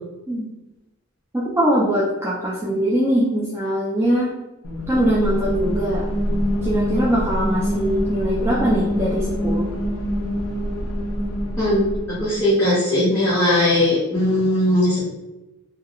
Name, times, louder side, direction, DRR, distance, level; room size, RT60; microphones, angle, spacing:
voice 1, 1.3-4.3 4.9-6.1 6.6-9.7, right 1 dB, 10° right, -7 dB, 0.3 m, -21 dB
sound 1, 4.6-12.4, equal, 80° left, 0.5 m, -25 dB
voice 2, 11.6-11.9 12.2-15.0, left 1 dB, 10° left, -12 dB, 0.7 m, -19 dB
2.3 x 2.1 x 2.8 m, 1.0 s
head